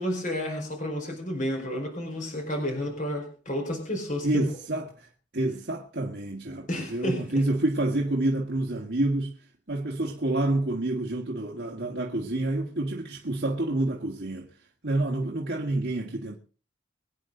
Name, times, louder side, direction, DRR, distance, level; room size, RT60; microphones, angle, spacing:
voice 1, 0.0-4.5 6.7-7.4, equal, 40° left, 4.7 m, -31 dB
voice 2, 4.2-14.5 14.8-16.4, right 2 dB, 60° right, 1.9 m, -28 dB
24.5 x 9.2 x 3.9 m
head